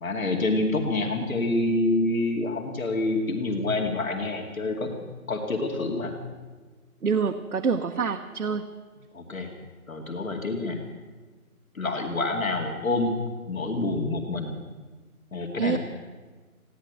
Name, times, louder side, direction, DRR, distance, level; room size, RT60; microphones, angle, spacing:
voice 1, 0.0-5.0 5.3-6.1 9.1-9.5 9.9-10.8 11.7-13.2 13.5-14.5 15.3-15.8, left 2 dB, 65° left, 3 dB, 2.5 m, -27 dB
voice 2, 7.0-8.7 15.6-15.8, right 5 dB, 75° right, 5 dB, 1.1 m, -26 dB
16.5 x 11.0 x 8.1 m, 1.4 s
hypercardioid pair, 175°, 43 cm